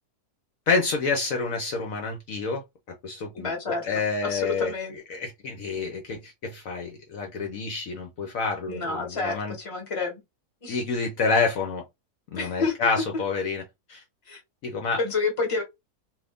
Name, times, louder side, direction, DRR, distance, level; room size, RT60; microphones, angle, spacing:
voice 1, 0.7-2.6 3.0-9.6 10.7-11.8 12.3-13.6 13.9-14.0 14.6-15.0, left 4 dB, 65° left, 1.0 m, -28 dB
voice 2, 3.4-4.9 8.7-10.2 10.6-10.8 12.4-12.7 14.3-14.4 15.0-15.6, left 4 dB, 25° left, 1.0 m, -29 dB
2.7 x 2.5 x 3.4 m
omnidirectional pair, 1.7 m